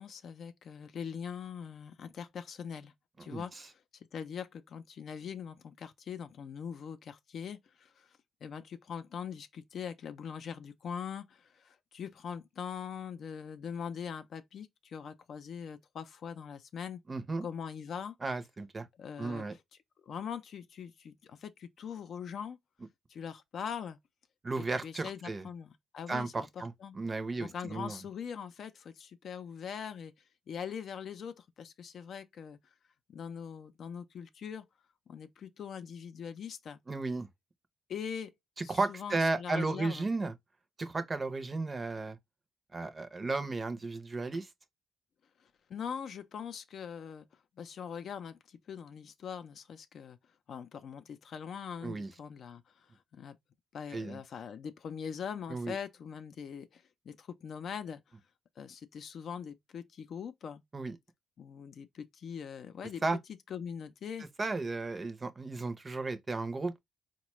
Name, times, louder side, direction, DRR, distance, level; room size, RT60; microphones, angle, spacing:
voice 1, 0.0-2.9 3.2-3.8 4.1-8.1 8.4-17.0 17.4-18.2 19.0-19.5 20.0-22.6 23.1-24.0 24.6-26.5 26.8-27.0 27.4-30.1 30.5-32.6 33.1-34.7 35.1-36.8 37.9-38.3 38.6-40.1 45.4-47.3 47.6-50.2 50.5-53.4 53.7-58.0 58.6-60.6 61.4-63.0 63.5-64.3, left 7 dB, 60° left, 0.4 m, -42 dB
voice 2, 17.1-17.5 18.2-18.9 19.2-19.5 24.4-25.5 26.1-28.0 36.9-37.3 38.7-40.3 40.8-42.2 42.7-44.5 51.8-52.1 53.9-54.2 55.5-55.7 60.7-61.0 63.0-63.2 64.4-66.8, right 3 dB, 30° right, 0.6 m, -34 dB
3.9 x 2.2 x 3.0 m
cardioid pair, 90°, 0 cm